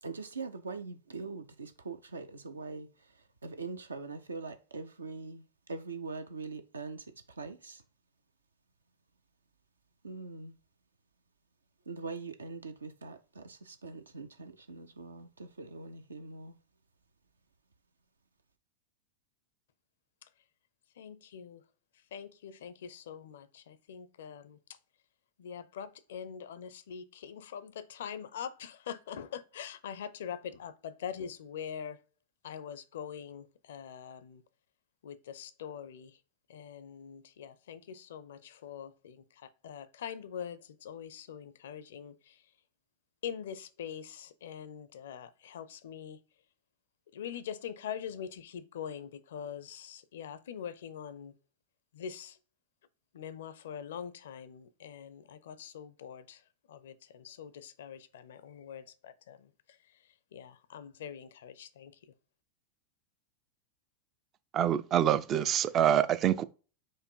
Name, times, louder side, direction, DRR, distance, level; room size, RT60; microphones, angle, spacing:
voice 1, 0.0-7.8 10.0-10.5 11.9-16.6, right 4 dB, 75° right, 0.6 m, -43 dB
voice 2, 21.0-21.6 22.1-24.6 25.4-32.0 32.4-34.4 35.0-36.2 36.5-42.4 43.2-46.2 47.1-51.4 51.9-52.4 53.1-56.4 56.7-59.8 60.0-61.9, left 8 dB, 60° left, 0.5 m, -43 dB
voice 3, 64.5-66.4, right 10 dB, 30° right, 0.4 m, -26 dB
4.5 x 2.5 x 4.5 m
figure-of-eight pair, 90°, 0 cm